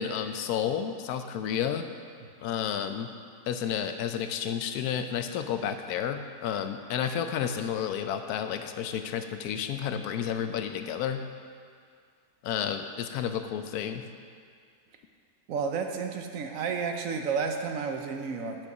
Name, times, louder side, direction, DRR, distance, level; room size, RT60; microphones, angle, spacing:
voice 1, 0.0-1.9 2.4-3.1 3.5-11.2 12.4-14.0, left 8 dB, 85° left, 8 dB, 1.1 m, -31 dB
voice 2, 15.5-18.6, right 5 dB, 70° right, 4 dB, 1.0 m, -31 dB
8.2 x 5.4 x 5.9 m, 2.2 s
omnidirectional pair, 1.6 m